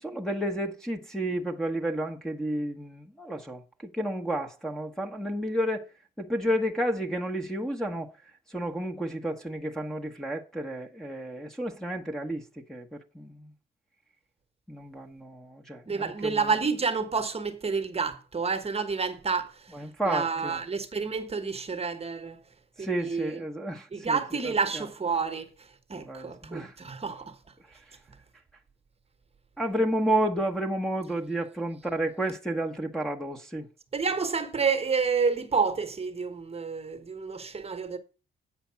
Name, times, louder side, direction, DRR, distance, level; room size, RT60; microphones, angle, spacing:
voice 1, 0.0-5.9 6.2-8.1 8.5-13.5 14.7-16.5 19.7-20.6 22.8-24.8 25.9-26.8 29.6-33.7, right 1 dB, 5° left, 1.1 m, -31 dB
voice 2, 15.9-19.7 20.0-22.4 22.8-23.4 23.9-25.5 25.9-27.3 33.9-38.0, right 5 dB, 30° right, 1.3 m, -29 dB
8.6 x 5.1 x 5.7 m
cardioid pair, 90°, 20 cm